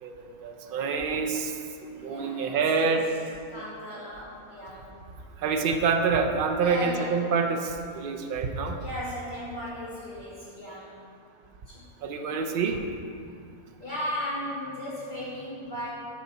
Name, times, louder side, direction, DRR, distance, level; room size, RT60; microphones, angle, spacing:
voice 1, 0.0-1.5 2.0-3.1 5.4-8.8 12.0-12.8, right 5 dB, 65° right, 5 dB, 0.5 m, -26 dB
voice 2, 1.9-3.0 3.5-4.9 6.6-7.2 8.8-10.9 11.7-11.9 13.2-13.3 13.8-15.9, left 1 dB, 35° left, -11 dB, 2.1 m, -36 dB
7.5 x 5.5 x 4.1 m, 2.4 s
omnidirectional pair, 1.5 m